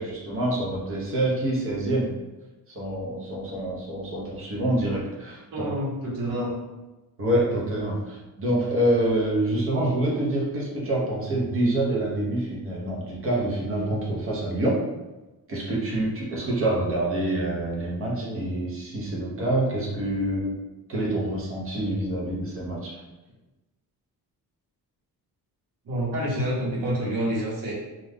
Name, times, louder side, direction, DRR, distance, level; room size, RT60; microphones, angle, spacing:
voice 1, 0.0-2.1 2.7-5.7 7.2-14.8 15.5-20.5 20.9-22.9, right 1 dB, 35° right, -4 dB, 0.8 m, -26 dB
voice 2, 5.5-6.5 7.5-8.0 18.1-18.4 25.8-27.7, equal, 65° right, -5 dB, 1.1 m, -28 dB
2.5 x 2.2 x 3.4 m, 1.1 s
cardioid pair, 165°, 36 cm